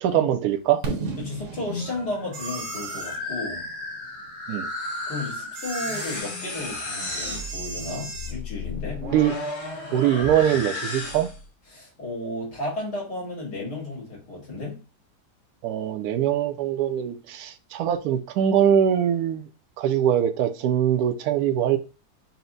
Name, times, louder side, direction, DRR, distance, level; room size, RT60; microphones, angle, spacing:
voice 1, 0.0-0.8 4.5-4.7 9.0-9.3 9.9-11.3 15.6-19.4 19.8-21.8, right 10 dB, 75° right, 1.1 m, -22 dB
Fireworks, 0.8-4.7, right 4 dB, 55° right, 1.1 m, -35 dB
voice 2, 1.2-3.6 5.1-9.1 11.7-14.8, left 2 dB, 80° left, 2.9 m, -33 dB
sound 1, 1.5-11.5, left 2 dB, 55° left, 1.6 m, -34 dB
sound 2, 2.3-3.2 5.5-6.3 7.0-8.4, right 4 dB, 90° right, 1.5 m, -37 dB
5.7 x 2.1 x 3.9 m
omnidirectional pair, 1.7 m